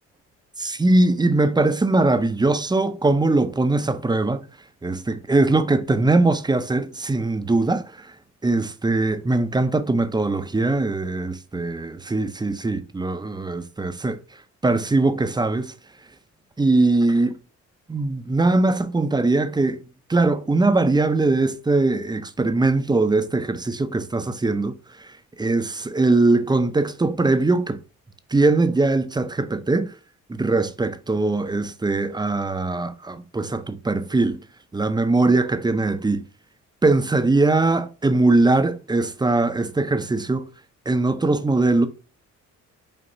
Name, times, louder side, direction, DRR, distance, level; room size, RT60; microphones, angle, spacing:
voice 1, 0.6-4.4 4.8-8.1 8.4-14.2 14.6-15.7 16.6-17.4 17.9-19.8 20.1-25.1 25.4-27.8 28.3-29.9 30.3-34.4 34.7-36.2 36.8-40.5 40.9-41.9, right 2 dB, 15° right, 0.5 m, -21 dB
5.2 x 2.9 x 2.7 m
cardioid pair, 75°, 31 cm